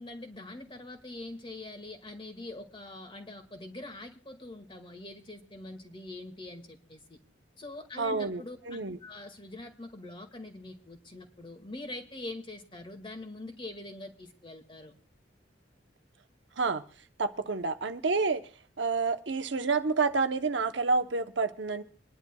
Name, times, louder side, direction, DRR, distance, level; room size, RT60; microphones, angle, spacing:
voice 1, 0.0-7.2 7.6-14.9, left 2 dB, 25° left, 2.0 m, -44 dB
voice 2, 8.0-9.0 16.6-16.8 17.2-18.4 18.8-21.8, right 4 dB, 75° right, 0.9 m, -29 dB
26.0 x 11.0 x 2.3 m
head